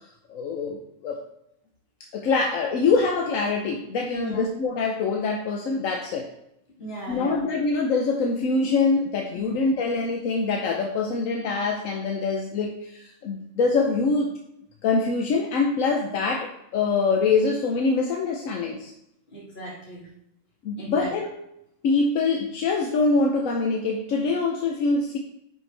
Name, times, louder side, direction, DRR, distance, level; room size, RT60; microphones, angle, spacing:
voice 1, 0.3-1.2 2.1-6.3 7.1-14.3 14.8-18.9 20.6-21.3 21.8-25.2, left 4 dB, 80° left, 2 dB, 1.1 m, -24 dB
voice 2, 4.1-4.5 6.8-7.4 9.5-9.6 19.3-20.1 20.8-21.1, equal, 50° left, -3 dB, 2.3 m, -36 dB
9.4 x 4.4 x 3.3 m, 0.80 s
omnidirectional pair, 1.4 m